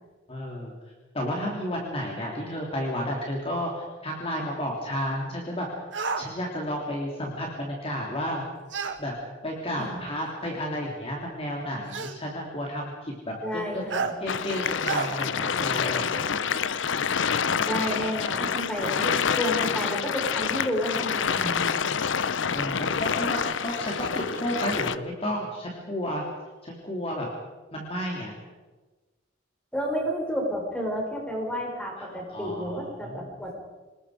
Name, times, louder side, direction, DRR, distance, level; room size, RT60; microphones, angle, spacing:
voice 1, 0.3-0.7 1.1-5.7 6.2-8.4 9.0-9.1 9.4-13.9 14.2-16.1 17.3-17.5 22.5-26.2 26.6-27.3 27.7-28.3 32.0-33.3, equal, 30° left, -1 dB, 3.2 m, -32 dB
sound 1, 5.9-6.3 8.7-9.0 10.2-10.3 11.9-12.2 13.9-14.1 14.8-15.1, right 5 dB, 70° right, 1.8 m, -29 dB
voice 2, 9.8-10.1 13.4-14.1 17.6-21.7 29.7-33.5, equal, 5° left, 0 dB, 4.9 m, -31 dB
sound 2, 14.3-25.0, left 6 dB, 70° left, 0.7 m, -27 dB
26.0 x 20.0 x 5.0 m, 1.2 s
head